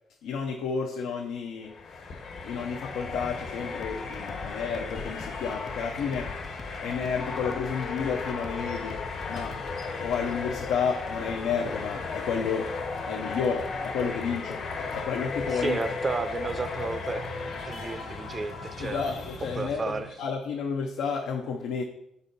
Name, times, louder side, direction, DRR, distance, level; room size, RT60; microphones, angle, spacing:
voice 1, 0.2-2.0 2.4-6.3 6.8-9.6 9.9-12.7 13.1-15.8 18.8-21.8, left 6 dB, 90° left, 2 dB, 0.5 m, -31 dB
sound 1, 1.6-20.1, left 4 dB, 70° left, 1.4 m, -35 dB
sound 2, 3.8-10.2, left 3 dB, 30° left, 0.3 m, -46 dB
voice 2, 15.5-19.1 19.6-20.1, right 3 dB, 35° right, 11 dB, 0.4 m, -32 dB
5.0 x 4.1 x 5.2 m, 0.79 s
cardioid pair, 90°, 0 cm